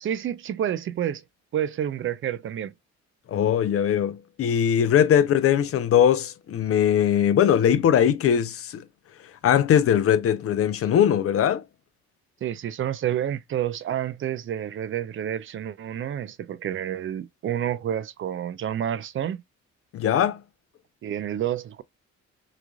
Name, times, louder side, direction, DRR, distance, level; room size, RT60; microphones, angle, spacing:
voice 1, 0.0-1.2 1.5-2.7 12.4-19.4 21.0-21.8, right 10 dB, 45° right, 0.4 m, -29 dB
voice 2, 3.3-8.8 9.4-11.6 19.9-20.4, left 9 dB, 50° left, 0.5 m, -20 dB
3.1 x 2.4 x 2.2 m
cardioid pair, 90°, 30 cm